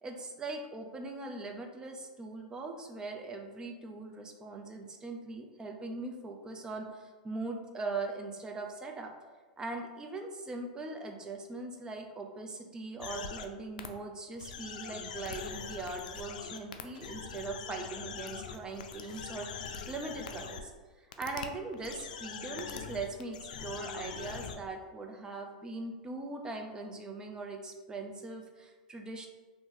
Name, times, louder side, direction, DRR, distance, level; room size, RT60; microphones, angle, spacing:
voice 1, 0.0-9.1 9.6-20.7 21.0-29.3, right 3 dB, 15° right, 3 dB, 0.5 m, -40 dB
sound 1, 13.0-13.5 13.8-13.9 14.4-20.6 21.1-21.5 21.7-24.6, left 6 dB, 75° left, 0.4 m, -42 dB
2.8 x 2.6 x 3.6 m, 1.3 s
hypercardioid pair, 115°, 4 cm